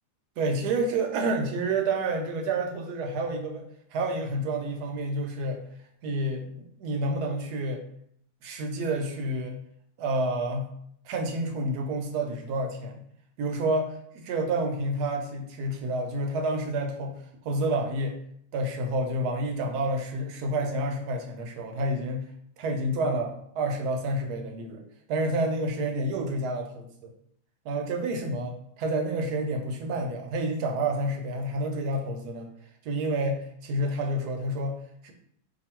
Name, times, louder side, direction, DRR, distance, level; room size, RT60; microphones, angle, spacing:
voice 1, 0.4-3.6 3.9-5.6 6.0-7.8 8.4-9.6 10.0-10.7 11.0-13.0 13.4-17.1 17.4-18.2 18.5-22.3 22.6-24.8 25.1-27.1 27.6-32.5 32.8-34.8 35.0-35.1, right 1 dB, 75° right, 3 dB, 1.2 m, -29 dB
2.8 x 2.6 x 4.3 m, 0.69 s
omnidirectional pair, 1.7 m